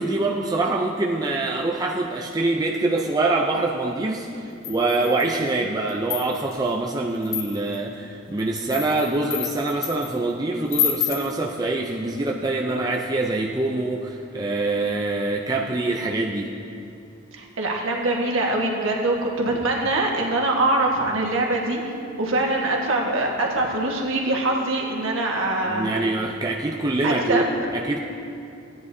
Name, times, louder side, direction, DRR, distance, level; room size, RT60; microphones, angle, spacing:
voice 1, 0.0-16.5 25.7-28.0, right 2 dB, 20° right, -1 dB, 0.4 m, -25 dB
sound 1, 4.6-5.4 5.9-6.6 7.2-7.8 8.4-10.1 10.7-11.3, left 8 dB, 80° left, 1.5 m, -28 dB
voice 2, 17.3-21.9 22.2-25.9 27.0-27.4, right 2 dB, 75° right, -1 dB, 1.5 m, -23 dB
16.0 x 9.6 x 2.7 m, 2.6 s
head